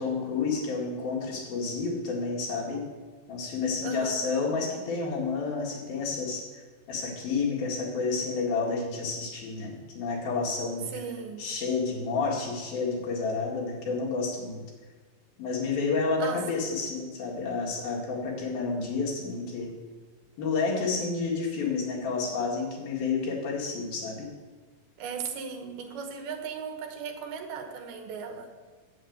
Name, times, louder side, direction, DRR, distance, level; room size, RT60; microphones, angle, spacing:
voice 1, 0.0-2.9 3.3-6.5 6.9-10.9 11.4-14.6 15.4-19.7 20.4-24.3, left 4 dB, 70° left, -3 dB, 3.8 m, -30 dB
voice 2, 3.8-4.3 10.9-11.5 16.2-16.4 25.0-28.5, right 6 dB, 80° right, 4 dB, 3.0 m, -37 dB
8.3 x 7.8 x 8.0 m, 1.4 s
omnidirectional pair, 4.4 m